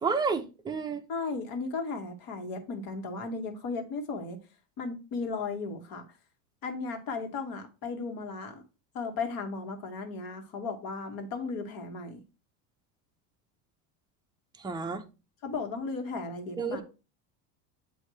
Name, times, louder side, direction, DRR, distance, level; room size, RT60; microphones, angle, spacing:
voice 1, 0.0-1.0 14.6-15.0 16.6-16.8, right 5 dB, 10° right, 0.6 m, -30 dB
voice 2, 1.1-4.4 4.8-6.0 6.6-8.6 8.9-12.2 15.4-16.8, left 4 dB, 50° left, 1.6 m, -35 dB
8.1 x 2.8 x 4.7 m
supercardioid pair, 140°, 45 cm